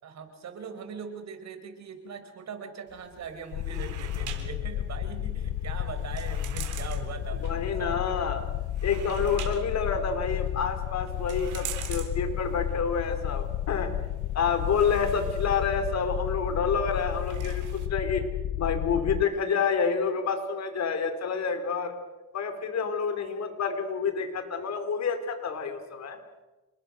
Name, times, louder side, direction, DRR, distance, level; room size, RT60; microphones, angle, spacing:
voice 1, 0.0-8.0, right 6 dB, 60° right, 7 dB, 5.0 m, -41 dB
sound 1, 2.9-17.9, right 10 dB, 80° right, 3.9 m, -46 dB
sound 2, 3.5-19.2, left 12 dB, 85° left, 0.9 m, -32 dB
voice 2, 7.4-8.4 8.8-13.9 14.3-18.2 18.6-21.9 22.3-26.2, left 6 dB, 60° left, 7 dB, 4.3 m, -28 dB
28.5 x 21.0 x 6.6 m, 1.1 s
cardioid pair, 90°, 30 cm